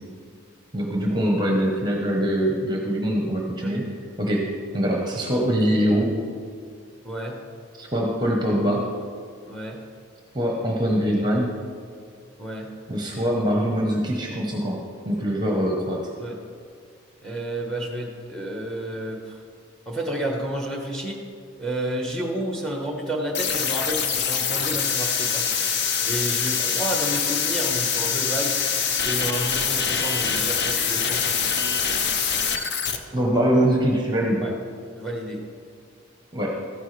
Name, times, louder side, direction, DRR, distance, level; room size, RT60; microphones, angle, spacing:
voice 1, 0.7-3.9 4.2-6.2 7.8-8.9 10.3-11.6 12.9-16.0 33.1-34.4 36.3-36.5, equal, 20° right, 0 dB, 1.0 m, -23 dB
voice 2, 7.0-7.4 9.5-9.8 12.4-12.7 16.2-16.4 17.2-19.4 19.9-21.2 21.6-25.4 26.0-28.5 29.0-31.5 34.4-34.5 34.9-35.4, right 1 dB, 5° left, 1 dB, 1.2 m, -30 dB
sound 1, 23.3-33.0, left 6 dB, 55° left, 0.6 m, -24 dB
13.5 x 10.0 x 3.3 m, 2.2 s
head